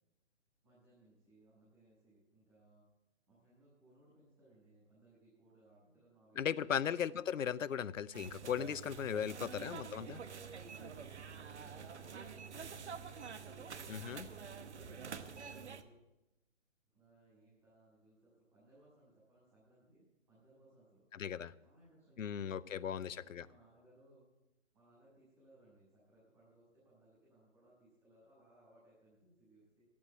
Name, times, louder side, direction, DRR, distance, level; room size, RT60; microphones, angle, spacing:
voice 1, 0.6-2.8 3.3-6.9 9.0-9.6 10.0-13.0 13.3-16.0 16.9-21.1 21.6-24.3 24.7-29.9, right 1 dB, 25° right, -10 dB, 6.7 m, -66 dB
voice 2, 6.4-10.2 13.9-14.3 21.1-21.5 22.2-23.5, left 8 dB, 85° left, 17 dB, 0.7 m, -37 dB
sound 1, 8.1-15.8, right 6 dB, 65° right, 1.1 m, -47 dB
13.5 x 8.7 x 8.1 m, 1.0 s
hypercardioid pair, 170°, 38 cm